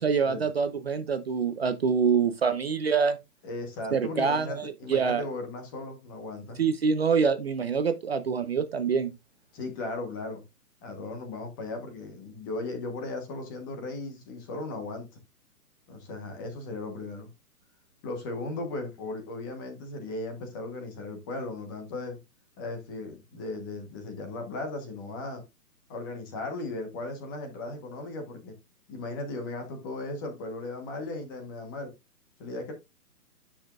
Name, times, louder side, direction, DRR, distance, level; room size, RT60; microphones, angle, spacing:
voice 1, 0.0-3.2 3.9-5.2 6.6-9.1, right 6 dB, 40° right, 0.7 m, -25 dB
voice 2, 3.4-6.6 9.5-10.4 10.8-15.1 15.9-17.3 18.0-22.2 22.6-25.4 25.9-28.5 28.9-31.9 32.4-32.7, left 2 dB, 15° left, 1.1 m, -37 dB
9.9 x 6.2 x 2.4 m
hypercardioid pair, 160°, 48 cm